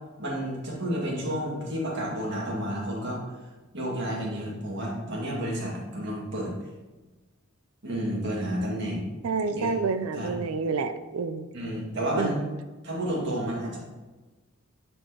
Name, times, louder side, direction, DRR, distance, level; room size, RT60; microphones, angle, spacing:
voice 1, 0.2-3.2 3.7-6.5 7.8-9.2 9.5-9.7 10.1-10.3 11.5-12.4 12.8-13.8, equal, 55° right, -4 dB, 1.9 m, -31 dB
voice 2, 9.2-11.5 12.2-12.5, right 4 dB, 80° right, 10 dB, 0.4 m, -29 dB
8.9 x 4.5 x 2.9 m, 1.2 s
head